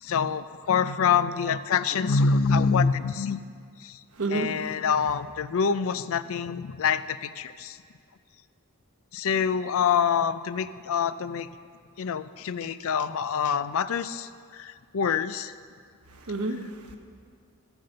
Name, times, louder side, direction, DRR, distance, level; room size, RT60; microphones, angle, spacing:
voice 1, 0.0-3.4 3.8-4.0 4.3-7.8 9.1-11.5 12.0-15.5, left 6 dB, 65° left, 14 dB, 0.4 m, -26 dB
voice 2, 4.1-4.8 5.1-5.2 16.1-17.0, right 2 dB, 85° right, 4 dB, 1.2 m, -31 dB
13.5 x 8.0 x 6.5 m, 2.1 s
head